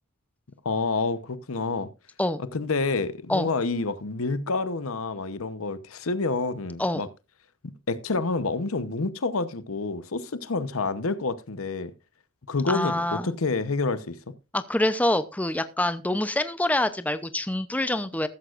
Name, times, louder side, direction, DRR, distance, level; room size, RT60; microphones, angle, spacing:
voice 1, 0.6-1.9 2.4-7.1 7.6-11.9 12.5-14.2, left 3 dB, 70° left, 0.9 m, -28 dB
voice 2, 12.7-13.3 14.5-18.3, left 1 dB, 5° left, 0.6 m, -26 dB
14.0 x 13.0 x 2.5 m
head